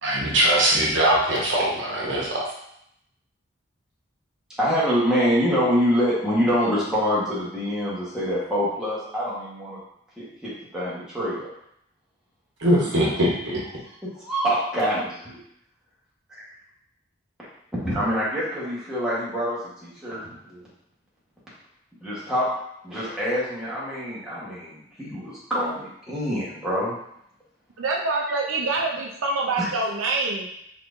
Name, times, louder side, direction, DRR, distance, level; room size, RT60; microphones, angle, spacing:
voice 1, 0.0-2.4 12.6-13.6, right 1 dB, 55° right, -4 dB, 1.0 m, -21 dB
voice 2, 4.6-9.8 10.2-11.5 12.7-13.1 14.0-15.4 16.3-16.4 17.8-20.7 22.0-22.5 22.8-27.0 29.6-29.7, equal, 5° right, -9 dB, 1.2 m, -26 dB
voice 3, 27.8-30.5, right 3 dB, 75° right, -1 dB, 0.5 m, -25 dB
4.2 x 3.5 x 2.6 m, 0.74 s
head